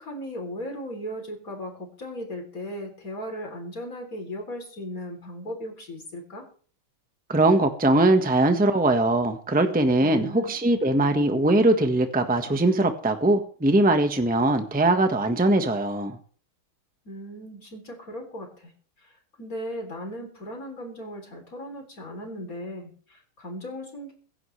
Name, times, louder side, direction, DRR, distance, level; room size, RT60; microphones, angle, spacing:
voice 1, 0.0-6.5 10.0-10.5 17.1-18.7 19.0-24.1, equal, 40° left, 4.0 m, -37 dB
voice 2, 7.3-16.2, right 2 dB, 5° right, 1.1 m, -21 dB
23.0 x 11.0 x 3.4 m
omnidirectional pair, 2.3 m